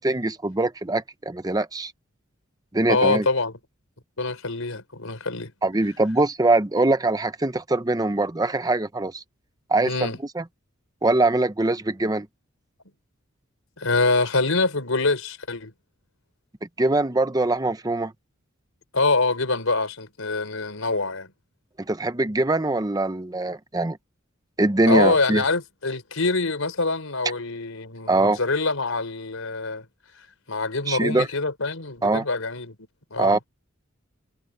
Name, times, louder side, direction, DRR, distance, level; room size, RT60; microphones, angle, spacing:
voice 1, 0.0-1.9 2.7-3.3 5.6-9.2 9.7-10.1 10.3-10.4 11.0-12.3 16.8-18.1 21.8-24.0 24.6-25.4 28.1-28.4 30.9-31.3 32.0-32.2 33.2-33.4, right 2 dB, 20° right, 0.8 m, -22 dB
voice 2, 2.9-3.5 4.2-5.5 9.8-10.2 13.8-15.7 18.9-21.3 24.9-29.8 30.5-32.8 33.1-33.4, left 3 dB, 85° left, 4.1 m, -25 dB
head